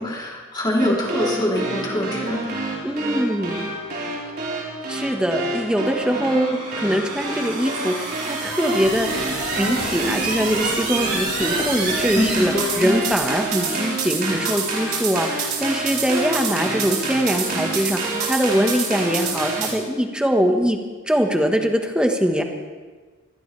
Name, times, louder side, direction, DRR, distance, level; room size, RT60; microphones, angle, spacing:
voice 1, 0.0-2.7 12.1-13.1, left 1 dB, 20° left, -3 dB, 3.3 m, -24 dB
sound 1, 0.8-19.7, right 3 dB, 50° right, 4.7 m, -27 dB
voice 2, 2.8-3.6 4.9-9.1 9.6-18.0 18.3-20.8 21.1-22.4, equal, 5° right, 4 dB, 1.3 m, -22 dB
sound 2, 8.8-13.6, left 1 dB, 65° left, 1.6 m, -35 dB
25.0 x 17.0 x 3.3 m, 1.4 s
head